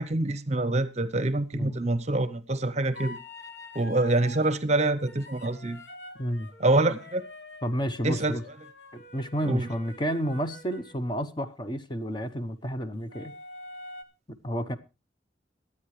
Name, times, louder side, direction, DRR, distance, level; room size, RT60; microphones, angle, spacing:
voice 1, 0.0-3.2 3.7-5.8 6.6-7.2 8.0-8.4 9.5-9.7, right 2 dB, 35° right, 0.7 m, -26 dB
sound 1, 2.9-4.5 5.1-11.0 13.1-14.0, left 2 dB, 70° left, 1.2 m, -45 dB
voice 2, 7.6-8.4 8.9-13.3 14.3-14.8, equal, 25° left, 0.8 m, -31 dB
23.5 x 8.5 x 3.1 m
head